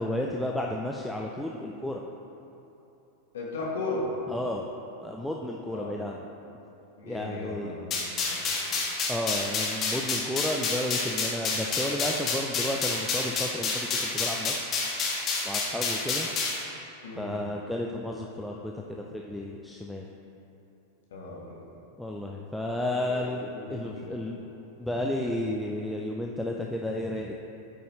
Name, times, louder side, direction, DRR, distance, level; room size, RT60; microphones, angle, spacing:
voice 1, 0.0-2.0 4.3-4.6 5.0-6.2 7.1-7.7 9.1-13.9 14.1-14.7 15.4-16.3 17.2-20.1 22.0-24.4 24.8-27.3, left 1 dB, ahead, -1 dB, 0.5 m, -32 dB
voice 2, 3.3-4.1 5.7-6.1 7.0-8.5 17.0-17.4 21.1-21.6 23.0-24.4, left 3 dB, 60° left, -4 dB, 1.5 m, -37 dB
sound 1, 7.9-16.6, left 4 dB, 30° left, 1.5 m, -29 dB
12.5 x 5.5 x 3.2 m, 2.9 s
figure-of-eight pair, 90°, 0 cm